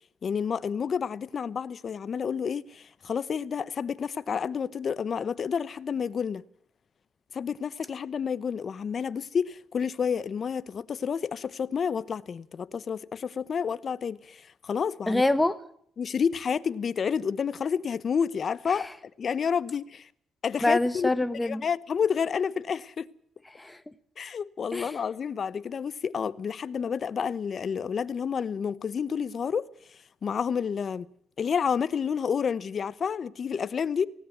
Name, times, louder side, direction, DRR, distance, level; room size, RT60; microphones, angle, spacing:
voice 1, 0.2-6.4 7.3-14.4 14.6-15.2 16.0-18.9 19.2-20.0 20.4-21.1 21.4-23.1 24.2-29.7 30.2-31.1 31.4-34.1, left 6 dB, 50° left, 1.0 m, -29 dB
voice 2, 15.1-15.6 18.7-18.8 20.6-21.6 23.5-23.9 24.7-25.0, left 2 dB, 10° left, 1.3 m, -26 dB
18.5 x 17.0 x 9.3 m
cardioid pair, 90°, 0 cm